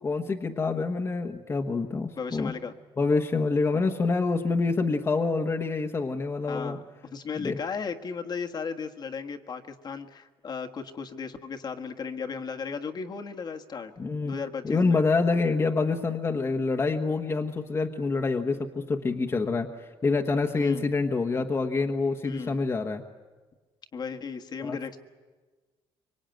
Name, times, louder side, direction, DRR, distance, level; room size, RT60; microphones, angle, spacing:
voice 1, 0.0-2.5 3.0-6.8 7.4-7.6 14.0-14.3 14.6-23.0 24.6-24.8, left 4 dB, 25° left, 3 dB, 1.2 m, -26 dB
voice 2, 2.2-2.7 6.5-6.8 7.1-13.9 14.2-15.0 20.6-20.8 22.2-22.6 23.9-25.0, left 5 dB, 45° left, 4 dB, 1.5 m, -35 dB
25.0 x 24.0 x 9.2 m, 1.3 s
cardioid pair, 130°, 10 cm